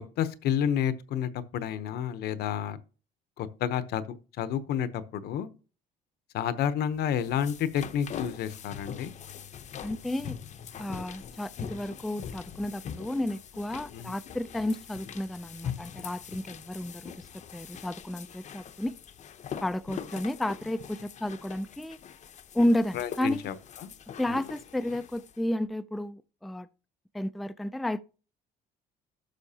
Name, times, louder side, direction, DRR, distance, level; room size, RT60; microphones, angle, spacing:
voice 1, 0.0-2.8 3.4-5.5 6.3-9.1 13.9-14.1 22.9-23.9 24.3-24.4, left 9 dB, 75° left, 0.8 m, -30 dB
sound 1, 7.0-25.4, left 8 dB, 45° left, 0.7 m, -43 dB
voice 2, 9.8-10.4 10.8-19.0 19.6-22.0 22.5-23.5 24.2-26.7 27.1-28.0, left 1 dB, ahead, 0.3 m, -32 dB
11.5 x 6.4 x 2.8 m
cardioid pair, 110°, 17 cm